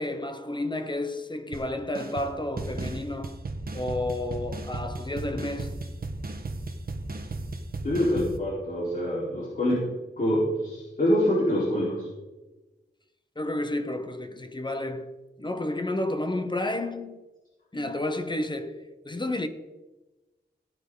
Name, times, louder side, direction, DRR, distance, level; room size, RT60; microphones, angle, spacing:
voice 1, 0.0-3.4 3.7-5.9 13.4-17.2 17.7-19.5, left 1 dB, 25° left, 1.0 m, -31 dB
sound 1, 1.5-1.7 1.9-2.3 2.6-8.4, right 2 dB, 55° right, 1.3 m, -35 dB
voice 2, 7.8-9.8 10.2-12.1, equal, 50° left, 4.3 m, -25 dB
17.5 x 9.8 x 4.0 m
wide cardioid pair, 110°, 18 cm